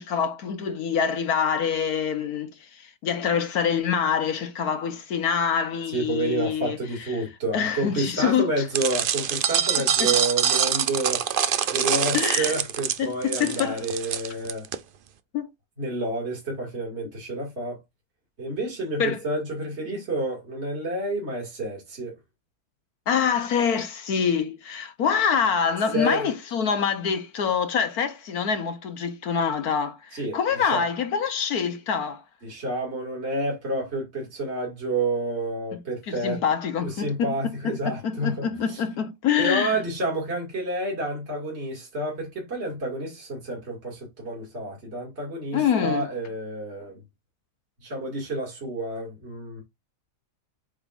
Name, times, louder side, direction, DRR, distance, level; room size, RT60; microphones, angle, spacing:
voice 1, 0.0-6.8 7.1-7.2 7.5-8.6 9.8-10.1 12.1-12.5 13.0-13.8 15.3-15.5 19.0-19.2 19.9-20.0 23.1-32.2 36.1-37.4 37.6-39.8 45.5-46.1, left 7 dB, 70° left, 1.4 m, -25 dB
voice 2, 5.9-11.3 11.7-14.7 15.8-17.8 18.4-22.1 25.9-26.3 30.1-30.8 32.4-36.4 36.8-38.8 39.4-47.0 47.8-49.6, right 2 dB, 40° right, 2.8 m, -29 dB
sound 1, 8.7-14.8, right 8 dB, 80° right, 0.4 m, -24 dB
8.1 x 5.3 x 2.5 m
omnidirectional pair, 1.7 m